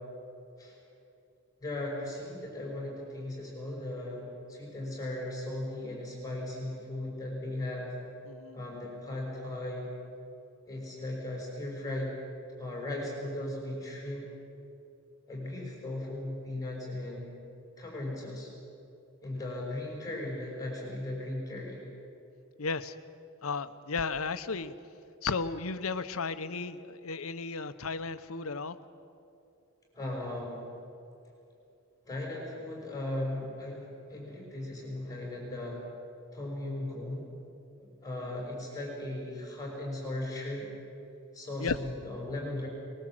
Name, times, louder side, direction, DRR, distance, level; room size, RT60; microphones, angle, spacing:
voice 1, 1.6-7.9 8.5-9.9 10.7-12.2 12.6-14.3 15.3-17.3 17.8-18.5 19.2-21.8 29.9-30.6 32.1-35.8 36.3-37.2 38.0-40.7 41.3-42.7, left 1 dB, 15° left, -2 dB, 5.7 m, -37 dB
voice 2, 8.2-8.6 22.6-22.9 23.4-24.7 25.2-28.8 41.6-41.8, left 4 dB, 75° left, 12 dB, 1.0 m, -34 dB
23.0 x 21.0 x 7.8 m, 2.7 s
head